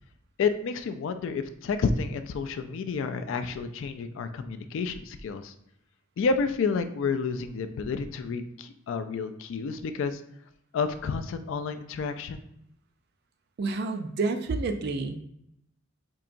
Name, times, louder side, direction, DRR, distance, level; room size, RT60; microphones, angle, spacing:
voice 1, 0.4-5.5 6.2-10.2 10.7-12.4, left 5 dB, 60° left, 9 dB, 0.3 m, -30 dB
voice 2, 13.6-15.1, right 3 dB, 50° right, 7 dB, 0.4 m, -29 dB
4.5 x 2.8 x 2.5 m, 0.76 s
head